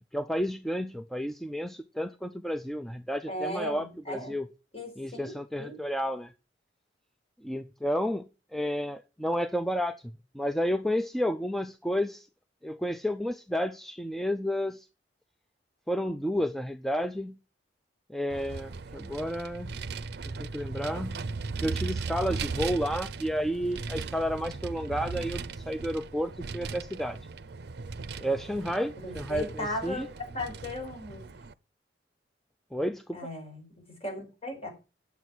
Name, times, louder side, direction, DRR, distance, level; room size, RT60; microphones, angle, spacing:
voice 1, 0.1-4.5 5.0-6.3 7.4-10.0 10.3-12.3 12.6-14.9 15.9-17.4 18.1-19.7 20.4-21.2 21.6-27.2 28.2-30.1 32.7-33.2, equal, ahead, 0.4 m, -31 dB
voice 2, 3.3-4.4 4.7-5.3 5.6-5.7 29.0-30.0 30.3-31.3 33.1-33.7 34.0-34.7, equal, 35° left, 5.0 m, -36 dB
Vehicle, 18.3-31.5, right 4 dB, 65° right, 0.6 m, -37 dB
9.3 x 7.1 x 6.1 m
head